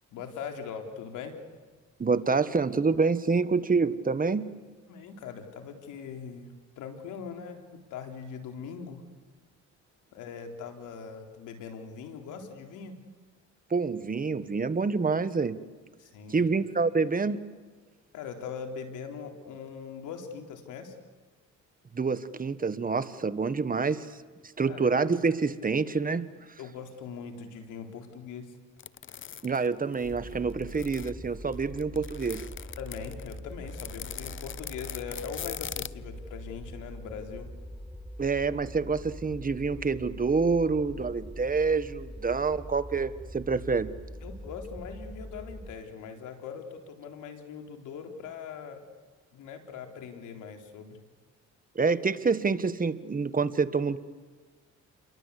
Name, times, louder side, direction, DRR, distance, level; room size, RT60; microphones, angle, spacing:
voice 1, 0.1-1.4 4.9-6.5 6.8-9.0 10.1-13.0 16.0-16.5 18.1-21.0 24.7-24.8 26.6-28.6 32.8-37.5 44.2-48.8 49.3-51.0, left 6 dB, 85° left, 4 dB, 3.8 m, -41 dB
voice 2, 2.0-4.5 13.7-15.6 16.3-17.4 21.9-24.1 24.6-26.3 29.4-32.5 38.2-43.9 51.7-54.0, right 4 dB, 30° right, 13 dB, 1.4 m, -27 dB
sound 1, 28.8-31.1 31.5-35.9, left 9 dB, 40° left, 0.7 m, -41 dB
sound 2, 30.0-45.8, equal, ahead, 1.2 m, -43 dB
29.5 x 22.5 x 8.3 m, 1.4 s
cardioid pair, 90°, 30 cm